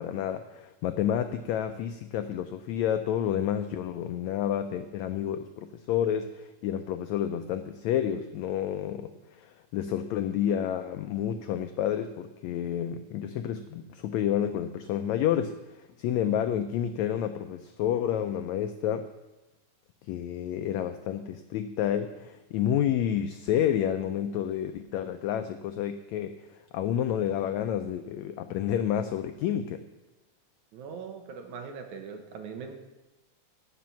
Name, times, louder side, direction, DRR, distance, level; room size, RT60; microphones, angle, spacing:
voice 1, 0.0-19.0 20.1-29.8, left 10 dB, 85° left, 8 dB, 1.6 m, -30 dB
voice 2, 30.7-32.7, right 5 dB, 70° right, 5 dB, 2.3 m, -41 dB
17.5 x 6.1 x 5.8 m, 1.1 s
omnidirectional pair, 3.8 m